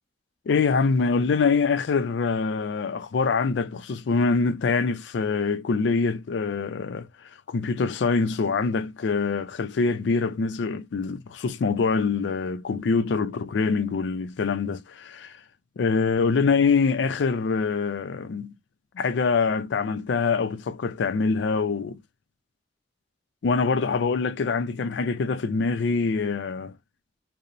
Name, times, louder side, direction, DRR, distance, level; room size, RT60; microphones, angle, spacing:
voice 1, 0.5-7.1 7.5-15.3 15.8-18.5 18.9-22.0 23.4-26.7, left 4 dB, 75° left, 0.4 m, -24 dB
2.9 x 2.0 x 2.5 m
head